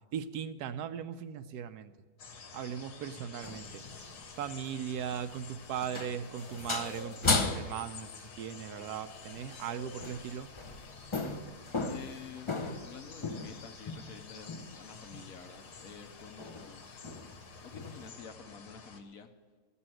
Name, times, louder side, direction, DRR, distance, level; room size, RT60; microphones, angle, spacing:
voice 1, 0.1-1.9 2.5-3.8 4.4-10.5, right 9 dB, 80° right, 11 dB, 1.1 m, -38 dB
sound 1, 2.2-19.0, left 5 dB, 85° left, 1.7 m, -50 dB
sound 2, 3.4-4.3 5.0-5.3 5.6-8.2 9.3-9.7 10.0-14.2 14.5-14.8 15.1-15.4 15.8-16.0 16.4-16.8 17.0-17.4 17.7-18.1, left 3 dB, 35° left, 0.4 m, -36 dB
voice 2, 11.9-17.0 17.6-19.3, left 6 dB, 65° left, 6 dB, 1.2 m, -49 dB
14.5 x 7.0 x 7.6 m, 1.4 s
omnidirectional pair, 1.7 m